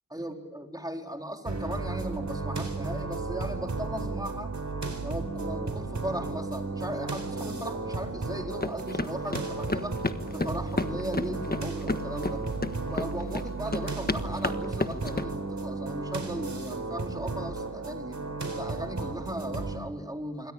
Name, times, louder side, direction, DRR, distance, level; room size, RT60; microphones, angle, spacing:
voice 1, 0.1-4.5 5.0-10.0 10.3-12.4 12.9-18.2 18.5-20.5, right 1 dB, 10° right, 2 dB, 4.1 m, -37 dB
sound 1, 1.5-19.8, right 3 dB, 60° right, 4.3 m, -34 dB
sound 2, 8.6-15.2, left 2 dB, 30° left, 1.5 m, -32 dB
27.0 x 24.5 x 8.8 m, 1.1 s
wide cardioid pair, 70°, 32 cm